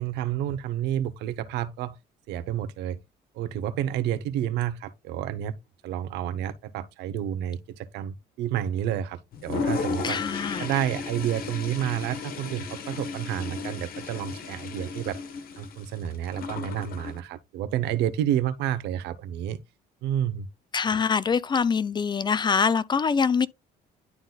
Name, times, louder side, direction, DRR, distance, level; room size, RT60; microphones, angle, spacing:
voice 1, 0.0-2.0 2.3-3.0 3.3-5.5 5.8-10.2 10.6-15.2 15.6-19.6 20.0-20.5, right 11 dB, 85° right, 0.9 m, -30 dB
Toilet flush, 9.3-17.2, left 5 dB, 60° left, 1.4 m, -34 dB
voice 2, 10.0-10.7 20.7-23.5, left 6 dB, 25° left, 0.5 m, -24 dB
11.0 x 3.9 x 2.4 m
cardioid pair, 110°, 17 cm